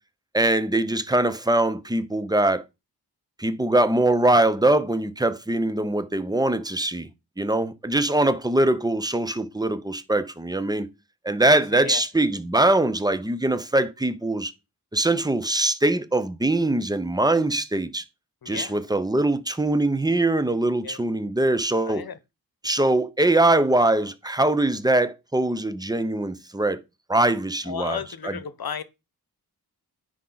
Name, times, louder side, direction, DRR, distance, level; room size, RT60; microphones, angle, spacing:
voice 1, 0.3-2.6 3.4-7.1 7.4-10.9 11.2-14.5 14.9-18.0 18.5-22.0 22.6-26.8 27.1-28.4, right 2 dB, 10° right, 0.6 m, -22 dB
voice 2, 11.4-12.0 18.4-18.8 20.8-21.0 21.9-22.2 27.7-28.8, left 7 dB, 65° left, 0.9 m, -34 dB
9.8 x 4.9 x 3.9 m
wide cardioid pair, 105°, 39 cm